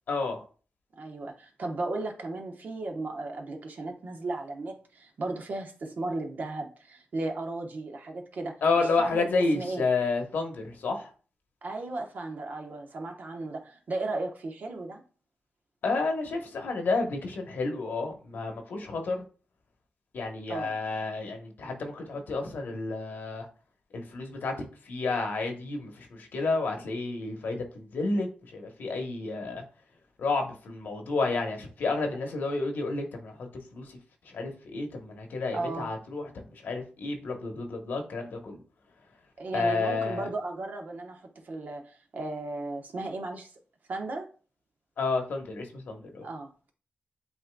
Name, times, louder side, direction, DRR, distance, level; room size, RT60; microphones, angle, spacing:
voice 1, 0.1-0.4 8.6-11.1 15.8-19.2 20.1-23.5 23.9-24.5 24.9-29.6 30.2-33.4 33.7-33.9 34.3-38.6 39.5-40.3 45.0-46.3, left 3 dB, 80° left, 1.0 m, -30 dB
voice 2, 1.0-9.8 11.6-15.0 20.5-20.7 35.5-35.9 39.4-43.5 43.9-44.3 46.2-46.7, right 2 dB, 60° right, 1.0 m, -35 dB
8.1 x 2.7 x 2.2 m
cardioid pair, 70°, 3 cm